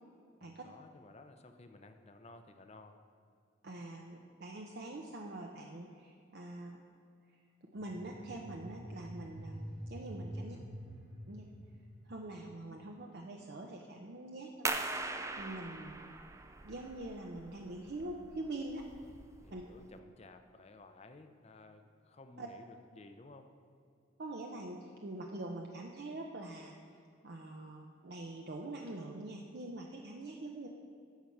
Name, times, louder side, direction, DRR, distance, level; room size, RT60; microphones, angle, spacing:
voice 1, 0.4-3.0 10.3-10.7 19.4-23.5, left 2 dB, 35° left, 7 dB, 0.6 m, -56 dB
voice 2, 3.6-6.8 7.7-9.6 9.9-10.6 11.3-11.5 12.1-16.1 16.6-18.9 19.5-19.6 22.4-22.5 24.2-26.7 27.2-30.7, right 2 dB, 55° right, 1 dB, 0.7 m, -44 dB
sound 1, 7.7-12.8, equal, 40° right, 1.8 m, -47 dB
sound 2, 14.7-20.0, right 3 dB, 15° right, 0.4 m, -41 dB
11.5 x 4.5 x 7.2 m, 2.5 s
head